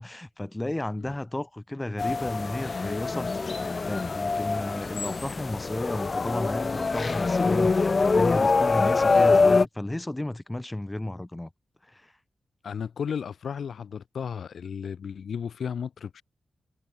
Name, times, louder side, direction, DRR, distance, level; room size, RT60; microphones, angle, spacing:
voice 1, 0.0-11.5 11.8-12.1, left 1 dB, 15° left, 2.2 m, -33 dB
sound 1, 2.0-9.7, left 4 dB, 40° left, 1.3 m, -24 dB
voice 2, 12.6-16.2, left 7 dB, 75° left, 3.6 m, -34 dB
wide cardioid pair, 95°, 0 cm